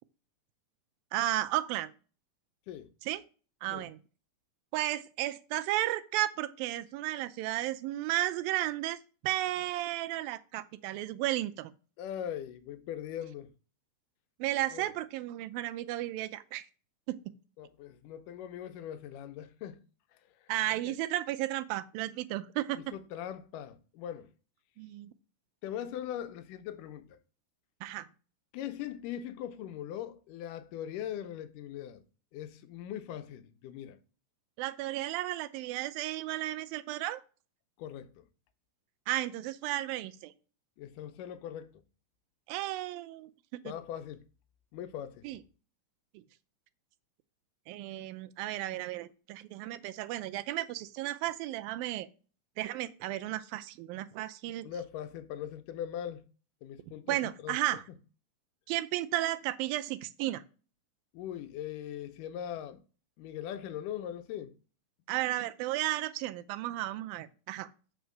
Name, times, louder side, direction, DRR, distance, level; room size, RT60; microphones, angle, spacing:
voice 1, 1.1-1.9 3.0-3.2 3.6-4.0 4.7-11.7 14.4-16.7 17.1-17.3 20.5-22.8 24.8-25.1 27.8-28.1 34.6-37.2 39.1-40.3 42.5-43.3 43.6-43.7 45.2-45.4 46.1-46.2 47.7-52.1 52.6-54.7 57.1-57.8 58.7-60.4 65.1-67.7, right 15 dB, 85° right, 2.4 m, -33 dB
voice 2, 12.0-13.5 14.7-14.9 17.6-19.8 20.8-20.9 22.9-24.3 25.6-27.2 28.5-32.0 32.3-34.0 37.8-38.3 40.8-41.8 43.7-44.3 44.7-45.2 54.6-56.2 56.6-57.6 61.1-62.8 63.2-64.5, left 10 dB, 75° left, 2.3 m, -40 dB
8.1 x 4.6 x 6.3 m
omnidirectional pair, 4.1 m